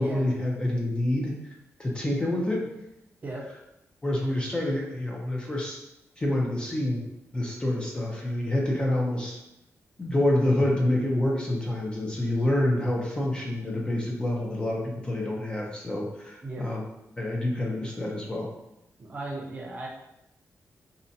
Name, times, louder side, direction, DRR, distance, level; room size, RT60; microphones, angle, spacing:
voice 1, 0.0-1.3 1.8-2.7 4.0-5.8 6.2-7.0 7.3-9.4 10.0-16.8 17.2-18.5, left 1 dB, 20° left, -2 dB, 0.4 m, -27 dB
voice 2, 19.0-19.9, right 2 dB, 30° right, -2 dB, 0.5 m, -36 dB
2.6 x 2.1 x 2.6 m, 0.87 s
wide cardioid pair, 140°, 5 cm